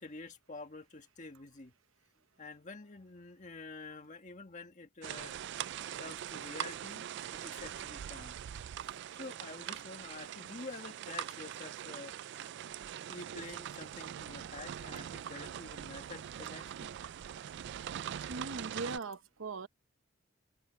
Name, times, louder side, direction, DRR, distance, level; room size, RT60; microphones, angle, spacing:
voice 1, 0.0-1.7 2.4-5.3 6.0-8.4 8.8-12.1 12.4-12.5 13.1-16.9, left 3 dB, 40° left, 1.7 m, -48 dB
sound 1, 5.0-19.0, right 10 dB, 60° right, 0.3 m, -42 dB
voice 2, 18.3-19.7, right 3 dB, 90° right, 0.8 m, -40 dB
head